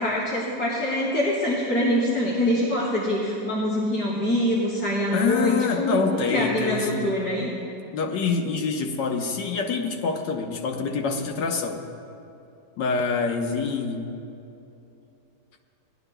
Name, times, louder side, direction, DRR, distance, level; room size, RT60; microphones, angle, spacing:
voice 1, 0.0-7.5, left 1 dB, 55° left, -9 dB, 2.7 m, -24 dB
voice 2, 5.1-7.1 7.9-11.8 12.8-14.1, left 4 dB, 85° left, 4 dB, 1.6 m, -26 dB
20.5 x 12.0 x 2.2 m, 2.7 s
omnidirectional pair, 1.9 m